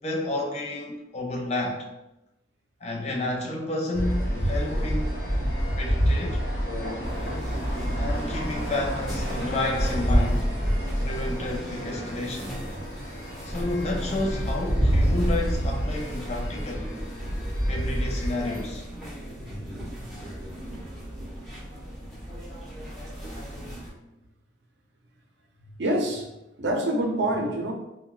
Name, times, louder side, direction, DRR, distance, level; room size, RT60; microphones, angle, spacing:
voice 1, 0.0-1.9 2.8-5.2 5.7-6.4 7.9-10.6 11.0-12.6 13.4-16.9 17.7-18.9, left 2 dB, 35° left, 0 dB, 0.4 m, -31 dB
sound 1, 3.9-18.6, equal, 50° left, 1.0 m, -28 dB
sound 2, 7.0-23.9, equal, ahead, 1.0 m, -34 dB
voice 2, 19.4-20.2 20.6-21.0 25.8-26.3 26.6-27.7, right 1 dB, 70° right, 1 dB, 0.5 m, -28 dB
3.7 x 2.1 x 2.3 m, 0.91 s
head